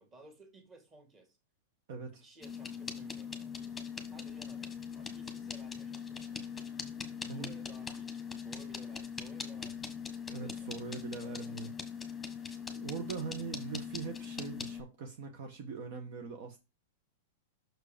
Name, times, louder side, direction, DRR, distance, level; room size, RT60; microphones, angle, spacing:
voice 1, 0.0-1.4 2.1-3.5 4.1-6.4 7.2-9.9 10.2-11.7, right 2 dB, 20° right, 2.1 m, -57 dB
voice 2, 1.9-2.2 7.3-7.5 10.3-11.7 12.3-12.5 12.7-16.6, right 5 dB, 55° right, 1.2 m, -42 dB
sound 1, 2.4-14.8, left 6 dB, 10° left, 1.2 m, -41 dB
6.3 x 4.6 x 5.1 m
supercardioid pair, 150°, 0 cm